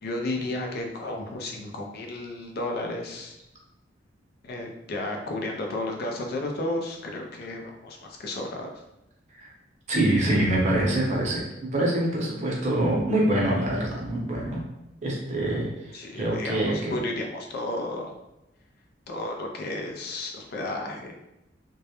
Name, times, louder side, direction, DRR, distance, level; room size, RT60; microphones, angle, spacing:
voice 1, 0.0-3.4 4.4-8.7 15.9-18.1 19.1-21.1, left 2 dB, 55° left, 1 dB, 0.4 m, -33 dB
voice 2, 9.9-11.4 11.7-14.6 15.0-17.0, right 1 dB, 40° right, -3 dB, 0.6 m, -25 dB
2.2 x 2.0 x 2.8 m, 0.91 s
head